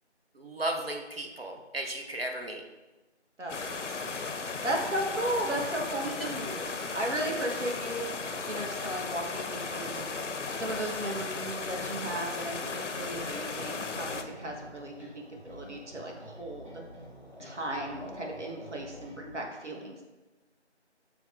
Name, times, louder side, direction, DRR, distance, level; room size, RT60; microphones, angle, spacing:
voice 1, 0.3-2.6 6.2-6.3, right 1 dB, 55° right, 2 dB, 0.6 m, -35 dB
voice 2, 3.4-4.1 4.6-10.0 10.6-16.7 17.4-20.0, right 1 dB, 80° right, 0 dB, 1.2 m, -36 dB
sound 1, 3.5-14.2, left 4 dB, 90° left, 0.5 m, -36 dB
sound 2, 3.7-19.1, equal, 40° left, 0.6 m, -49 dB
sound 3, 9.8-19.4, equal, 25° right, 1.0 m, -50 dB
6.1 x 3.4 x 2.4 m, 1.1 s
figure-of-eight pair, 170°, 35 cm